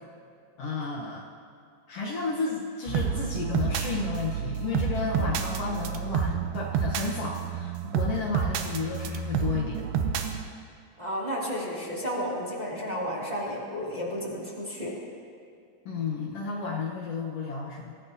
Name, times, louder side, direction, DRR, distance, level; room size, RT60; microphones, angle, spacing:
voice 1, 0.6-1.3 1.9-9.8 15.8-17.9, left 4 dB, 80° left, -3 dB, 1.3 m, -32 dB
sound 1, 2.9-10.4, right 7 dB, 90° right, 2.9 m, -29 dB
voice 2, 11.0-15.0, equal, 15° right, -7 dB, 1.9 m, -32 dB
24.5 x 15.0 x 2.8 m, 2.4 s
omnidirectional pair, 4.5 m